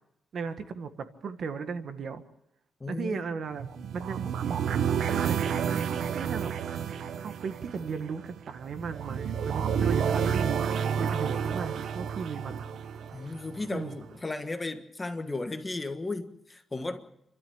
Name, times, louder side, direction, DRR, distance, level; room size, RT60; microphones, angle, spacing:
voice 1, 0.3-2.2 2.9-3.6 3.9-5.9 6.1-6.5 6.8-12.6 13.7-14.0, right 5 dB, 55° right, 1.6 m, -37 dB
voice 2, 2.8-3.2 13.1-17.1, left 2 dB, 20° left, 1.6 m, -35 dB
sound 1, 3.6-13.7, right 7 dB, 70° right, 1.0 m, -30 dB
29.5 x 13.0 x 7.2 m
cardioid pair, 135°, 0 cm